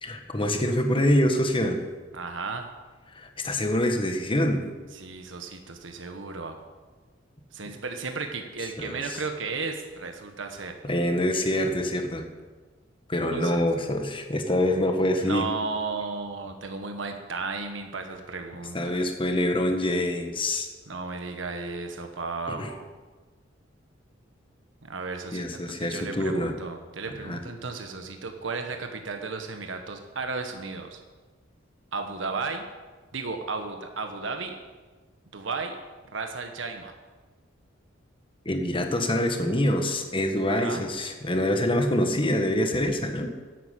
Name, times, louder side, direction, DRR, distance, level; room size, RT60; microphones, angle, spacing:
voice 1, 0.0-1.8 3.1-4.6 8.8-9.2 10.8-12.2 13.1-15.5 18.7-20.7 22.5-22.7 25.3-26.5 27.2-27.4 38.4-43.3, left 1 dB, 25° left, 5 dB, 1.5 m, -25 dB
voice 2, 2.1-2.7 4.9-6.6 7.5-10.7 13.3-13.5 15.2-19.0 20.9-22.9 24.8-31.0 31.9-32.6 33.1-34.6 35.3-35.8 36.1-36.9 40.5-40.8, right 4 dB, 80° right, 5 dB, 1.3 m, -34 dB
11.0 x 8.8 x 8.5 m, 1.3 s
head